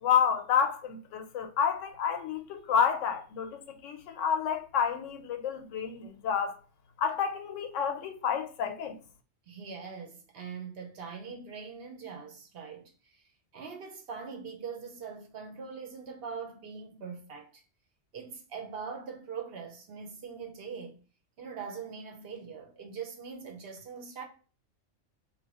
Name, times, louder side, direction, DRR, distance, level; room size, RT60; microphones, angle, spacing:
voice 1, 0.0-6.5 7.0-9.0, left 7 dB, 85° left, 0.9 m, -29 dB
voice 2, 9.5-13.2 13.5-17.6 18.1-21.0 21.4-24.2, right 6 dB, 60° right, 0.8 m, -42 dB
2.8 x 2.2 x 4.1 m
omnidirectional pair, 1.3 m